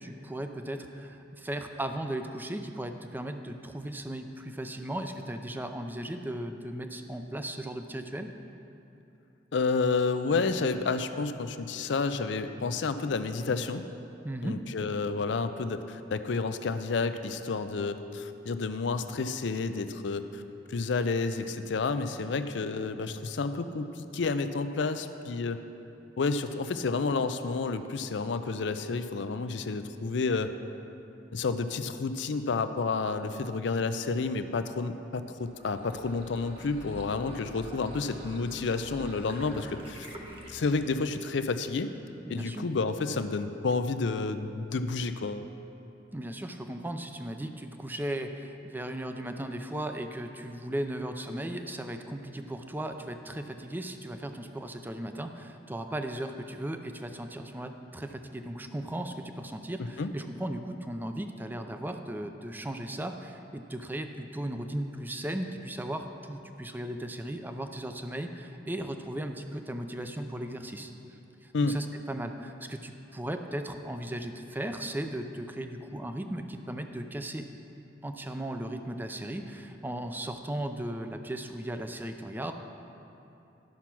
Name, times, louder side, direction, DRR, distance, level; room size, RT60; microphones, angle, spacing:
voice 1, 0.0-8.3 14.2-14.6 42.3-42.6 46.1-70.9 71.4-77.5 78.0-82.5, right 1 dB, 10° right, 6 dB, 0.5 m, -36 dB
voice 2, 9.5-13.8 14.4-20.4 20.7-25.6 26.2-30.5 31.3-40.1 40.5-41.9 42.3-45.5 60.0-60.1 71.5-71.8, left 4 dB, 70° left, 10 dB, 0.5 m, -30 dB
sound 1, 35.3-41.4, right 1 dB, 30° right, 1.2 m, -47 dB
12.0 x 5.7 x 6.1 m, 2.9 s
head